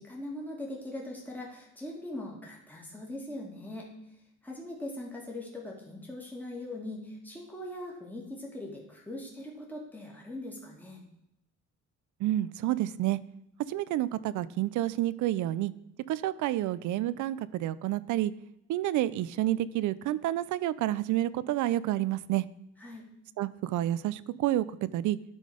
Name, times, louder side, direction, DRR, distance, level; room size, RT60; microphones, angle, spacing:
voice 1, 0.0-3.9 4.4-11.0 22.8-23.1, left 1 dB, 5° left, -2 dB, 2.1 m, -41 dB
voice 2, 12.2-13.2 13.7-15.7 16.1-18.3 18.7-22.4 23.4-24.6 24.9-25.2, right 14 dB, 80° right, 17 dB, 0.4 m, -29 dB
10.0 x 3.9 x 4.9 m, 0.85 s
cardioid pair, 90°, 30 cm